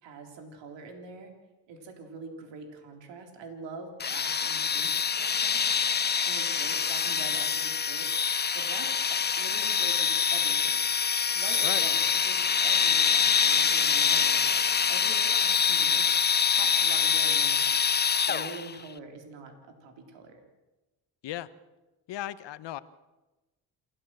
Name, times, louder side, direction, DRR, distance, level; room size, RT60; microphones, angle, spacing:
voice 1, 0.0-1.3 1.7-4.9 5.2-8.1 8.5-10.9 11.3-14.4 14.9-16.2 16.5-17.7 18.3-20.4, right 4 dB, 80° right, 4 dB, 3.8 m, -44 dB
sound 1, 4.0-18.8, left 6 dB, 25° left, 0.6 m, -25 dB
voice 2, 22.1-22.8, left 13 dB, 70° left, 14 dB, 1.2 m, -35 dB
27.5 x 14.5 x 7.6 m, 1.1 s
supercardioid pair, 75°, 44 cm